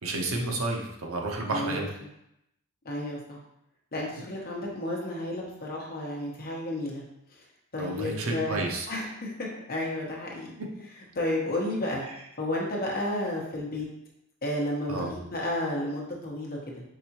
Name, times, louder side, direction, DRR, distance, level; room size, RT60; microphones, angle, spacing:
voice 1, 0.0-1.9 7.8-8.9 10.6-10.7 14.9-15.1, right 2 dB, 65° right, 1 dB, 0.8 m, -31 dB
voice 2, 1.5-1.9 2.8-3.4 3.9-7.0 7.7-10.5 11.1-12.0 12.4-13.9 14.4-16.8, left 1 dB, 40° left, -2 dB, 1.0 m, -32 dB
4.9 x 3.4 x 2.9 m, 0.81 s
head